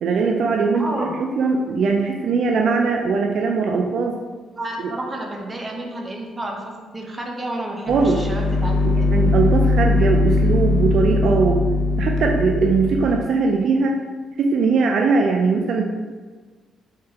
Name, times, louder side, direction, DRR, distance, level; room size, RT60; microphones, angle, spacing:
voice 1, 0.0-1.1 1.4-4.2 4.8-4.9 7.9-8.2 9.1-11.6 12.0-14.0 14.4-15.8, right 4 dB, 65° right, 2 dB, 0.3 m, -20 dB
voice 2, 0.7-1.2 4.5-9.1, right 1 dB, 25° right, 0 dB, 0.7 m, -30 dB
sound 1, 7.9-13.2, left 2 dB, 70° left, 0.5 m, -20 dB
3.7 x 3.3 x 2.8 m, 1.4 s
cardioid pair, 90°, 0 cm